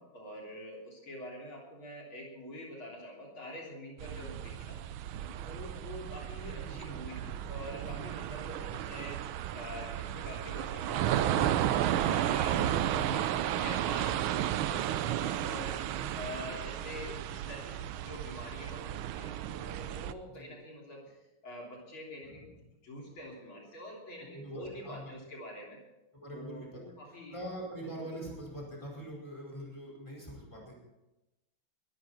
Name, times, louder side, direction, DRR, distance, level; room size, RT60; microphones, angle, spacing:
voice 1, 0.0-4.8 5.4-9.2 9.5-12.6 12.9-13.2 13.5-15.8 16.1-17.8 18.0-21.1 21.4-22.5 22.8-25.8 26.3-27.4, left 1 dB, 70° left, -2 dB, 4.1 m, -45 dB
sound 1, 4.0-20.1, right 11 dB, 75° right, 1.5 m, -33 dB
voice 2, 11.1-11.7 12.4-13.4 16.0-16.1 20.3-20.5 22.2-22.6 24.3-25.1 26.2-26.8 27.3-30.7, right 1 dB, 15° left, -2 dB, 5.2 m, -43 dB
22.0 x 13.0 x 4.3 m, 0.98 s
omnidirectional pair, 2.3 m